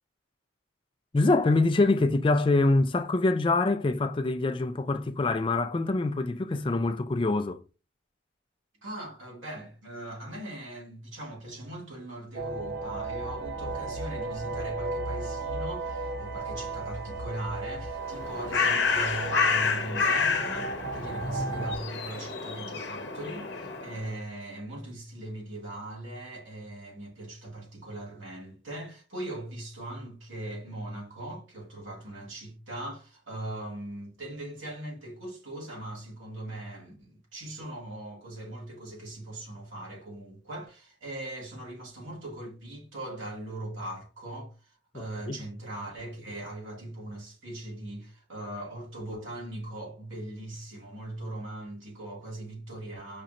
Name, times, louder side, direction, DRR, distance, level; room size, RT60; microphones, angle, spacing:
voice 1, 1.1-7.6 44.9-45.4, left 2 dB, 25° left, 0.3 m, -25 dB
voice 2, 8.8-53.2, right 1 dB, 80° right, 2.1 m, -40 dB
sound 1, 12.3-21.8, right 3 dB, 50° right, 0.8 m, -35 dB
Bird, 18.0-24.1, left 5 dB, 55° left, 0.8 m, -29 dB
5.2 x 2.9 x 2.5 m
head